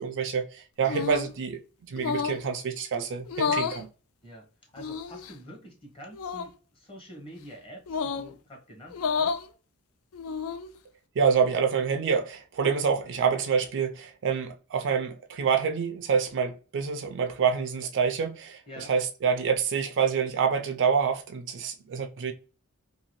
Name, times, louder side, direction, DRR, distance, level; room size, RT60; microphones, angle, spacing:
voice 1, 0.0-1.6 1.9-3.9 11.2-18.6 18.9-22.3, right 6 dB, 55° right, 0.4 m, -27 dB
sound 1, 0.8-1.3 2.0-2.4 3.3-3.8 4.8-5.3 6.1-6.5 7.9-8.3 8.9-9.4 10.1-10.7, left 6 dB, 70° left, 0.3 m, -30 dB
voice 2, 4.2-9.3 18.7-18.9, equal, 25° left, 0.8 m, -47 dB
2.7 x 2.7 x 3.0 m
head